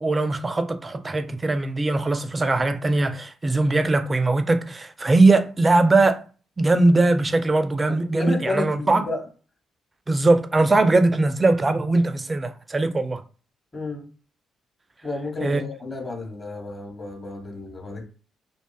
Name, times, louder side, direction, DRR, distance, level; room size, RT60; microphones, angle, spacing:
voice 1, 0.0-6.2 6.6-9.0 10.1-13.2 15.4-15.6, right 2 dB, 25° right, 0.4 m, -20 dB
voice 2, 8.1-9.3 13.7-14.0 15.0-18.1, left 2 dB, 30° left, 0.9 m, -31 dB
2.5 x 2.2 x 2.3 m
figure-of-eight pair, 40°, 0 cm